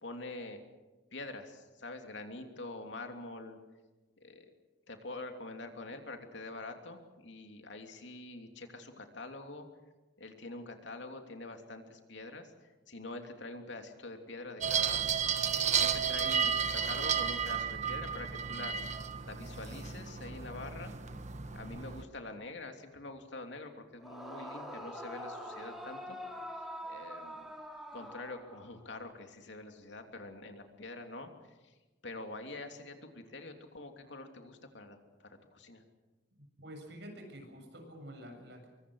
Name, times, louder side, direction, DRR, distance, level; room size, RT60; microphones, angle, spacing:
voice 1, 0.0-0.6 1.1-3.6 4.2-4.5 4.9-9.6 10.2-12.5 12.9-15.1 15.7-18.8 19.3-20.9 21.5-26.2 26.8-27.5 27.9-31.3 31.6-31.7 32.0-35.8, left 2 dB, 70° left, 5 dB, 3.0 m, -45 dB
sound 1, 14.6-22.0, right 7 dB, 40° right, 1.3 m, -33 dB
Yell / Screaming, 24.0-28.9, equal, ahead, 3.5 m, -44 dB
voice 2, 36.6-38.7, equal, 65° right, 3 dB, 7.2 m, -48 dB
24.0 x 24.0 x 6.4 m, 1.2 s
head